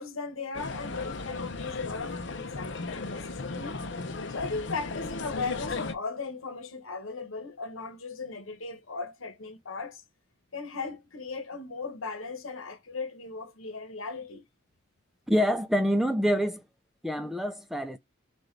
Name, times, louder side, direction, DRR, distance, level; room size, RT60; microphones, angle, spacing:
voice 1, 0.0-3.8 4.3-10.0 10.5-14.4, left 4 dB, 85° left, 1.2 m, -37 dB
sound 1, 0.5-5.9, left 3 dB, 65° left, 0.8 m, -36 dB
voice 2, 15.3-16.6 17.0-18.0, equal, ahead, 0.4 m, -26 dB
6.4 x 2.5 x 3.3 m
head